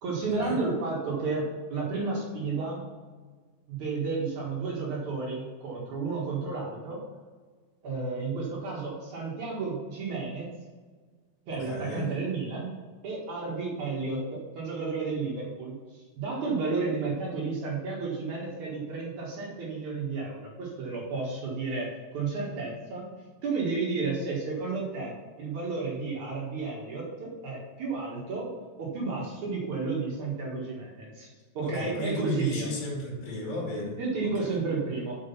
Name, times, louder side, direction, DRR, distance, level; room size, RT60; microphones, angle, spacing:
voice 1, 0.0-2.8 3.7-7.0 7.8-10.5 11.5-12.7 13.0-23.1 23.4-28.5 28.8-31.3 31.5-32.7 34.0-35.2, right 4 dB, 55° right, -4 dB, 2.6 m, -32 dB
voice 2, 11.5-12.1 31.6-34.6, left 1 dB, 85° left, -2 dB, 4.5 m, -34 dB
6.8 x 6.3 x 5.7 m, 1.5 s
omnidirectional pair, 4.7 m